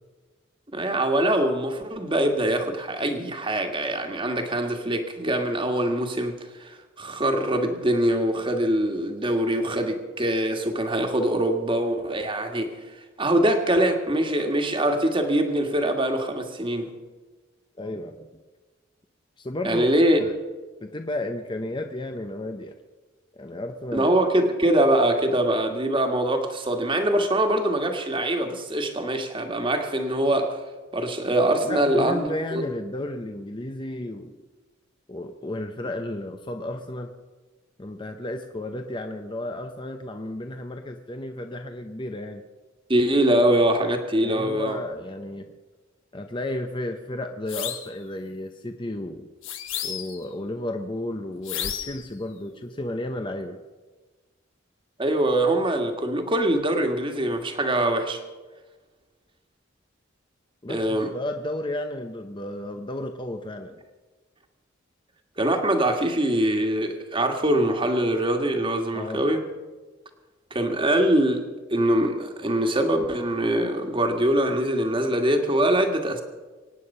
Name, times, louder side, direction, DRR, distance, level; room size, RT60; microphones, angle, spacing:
voice 1, 0.7-12.7 13.2-16.9 19.6-20.2 23.9-30.6 30.9-32.6 42.9-44.8 55.0-58.2 60.7-61.1 65.4-69.4 70.5-71.4 71.7-76.2, right 1 dB, 25° right, 4 dB, 1.8 m, -23 dB
voice 2, 17.8-18.3 19.4-19.9 20.2-20.4 20.8-22.7 23.3-24.1 31.6-34.3 35.1-37.1 37.8-42.4 44.2-45.5 46.1-49.3 49.8-53.6 60.6-63.8 68.9-69.2, left 1 dB, 25° left, 5 dB, 0.8 m, -33 dB
sound 1, 47.5-47.9 49.4-50.3 51.4-52.1, left 9 dB, 90° left, 1.4 m, -32 dB
24.5 x 9.4 x 5.5 m, 1.3 s
head